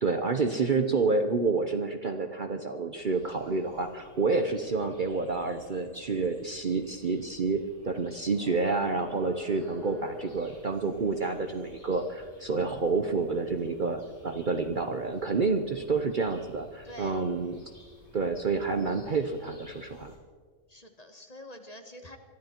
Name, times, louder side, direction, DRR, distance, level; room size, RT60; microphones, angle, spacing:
voice 1, 0.0-17.5 18.1-20.1, right 4 dB, 45° right, 7 dB, 0.8 m, -29 dB
sound 1, 2.9-20.2, equal, 90° left, 5.3 m, -50 dB
voice 2, 16.8-17.2 20.7-22.2, left 1 dB, 30° left, 6 dB, 1.2 m, -46 dB
22.0 x 13.5 x 4.5 m, 1.6 s
omnidirectional pair, 1.4 m